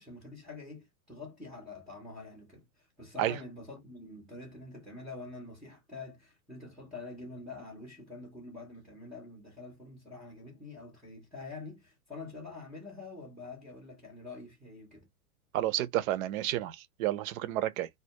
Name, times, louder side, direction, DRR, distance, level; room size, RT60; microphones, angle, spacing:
voice 1, 0.0-15.1, left 3 dB, ahead, 0.4 m, -46 dB
voice 2, 15.5-17.9, right 13 dB, 60° right, 0.5 m, -31 dB
2.1 x 2.1 x 2.7 m
hypercardioid pair, 125°, 47 cm